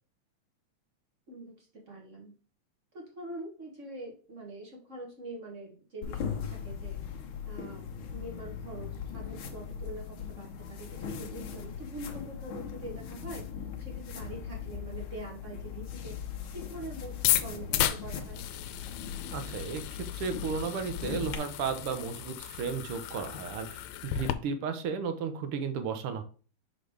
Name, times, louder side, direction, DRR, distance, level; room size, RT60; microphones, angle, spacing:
voice 1, 1.3-2.3 2.9-7.0 7.5-13.5 13.8-18.4, right 1 dB, 50° right, 0 dB, 0.9 m, -44 dB
sound 1, 6.0-21.4, left 7 dB, 65° left, 1.3 m, -39 dB
sound 2, 17.1-24.3, left 12 dB, 85° left, 2.0 m, -34 dB
voice 2, 19.3-19.8 20.1-26.2, right 6 dB, 70° right, 8 dB, 1.4 m, -34 dB
6.1 x 5.0 x 3.4 m, 0.39 s
omnidirectional pair, 3.3 m